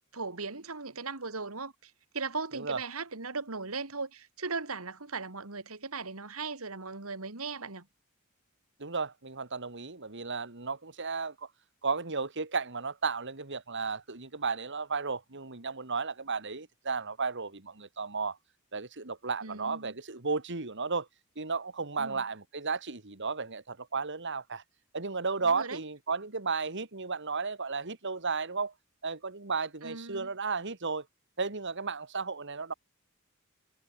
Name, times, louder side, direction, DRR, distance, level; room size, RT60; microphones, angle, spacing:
voice 1, 0.1-7.9 19.4-19.9 22.0-22.2 25.4-25.8 29.8-30.3, right 4 dB, 90° right, 2.7 m, -38 dB
voice 2, 8.8-11.5 11.8-18.4 18.7-21.1 21.4-24.6 24.9-28.7 29.0-31.0 31.4-32.7, right 4 dB, 60° right, 2.4 m, -34 dB
head